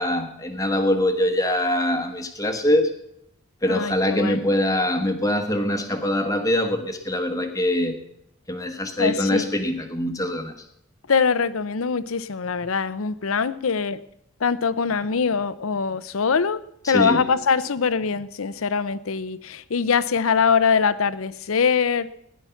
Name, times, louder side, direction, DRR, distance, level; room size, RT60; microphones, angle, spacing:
voice 1, 0.0-2.9 3.6-8.0 8.5-10.5 16.8-17.3, left 1 dB, 15° left, 1.2 m, -23 dB
voice 2, 3.7-4.4 9.0-9.5 11.1-14.0 14.4-16.6 16.9-22.1, left 5 dB, 75° left, 0.7 m, -23 dB
16.0 x 10.5 x 5.8 m
head